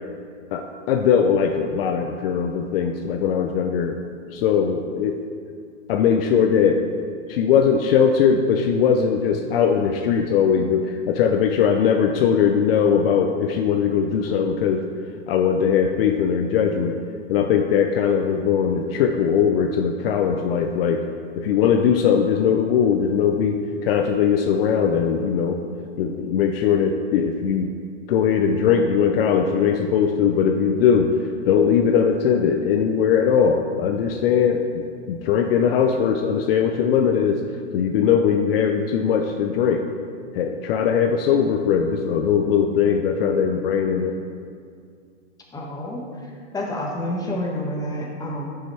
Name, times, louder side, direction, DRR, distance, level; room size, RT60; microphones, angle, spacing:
voice 1, 0.5-4.0 4.3-5.2 5.9-6.8 7.3-14.8 15.3-17.0 17.3-21.0 21.4-25.6 26.0-27.7 28.1-37.4 37.7-39.8 40.3-44.1, left 7 dB, 50° left, 4 dB, 0.6 m, -20 dB
voice 2, 45.5-48.5, left 1 dB, 10° left, -1 dB, 1.3 m, -29 dB
9.8 x 5.6 x 4.4 m, 2.2 s
hypercardioid pair, 125°, 37 cm